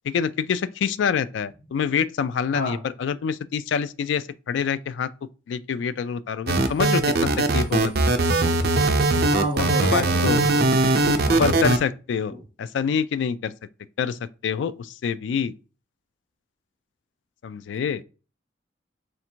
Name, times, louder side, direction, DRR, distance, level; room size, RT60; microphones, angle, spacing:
voice 1, 0.1-5.1 5.5-7.0 7.5-8.1 9.6-10.4 11.4-12.3 12.6-13.5 14.0-15.5 17.4-18.0, left 6 dB, 80° left, 0.3 m, -26 dB
sound 1, 6.5-11.8, right 2 dB, 60° right, 0.6 m, -20 dB
voice 2, 9.3-10.7 11.3-11.6 12.3-12.4, equal, 55° left, 1.0 m, -30 dB
3.3 x 2.5 x 4.4 m
head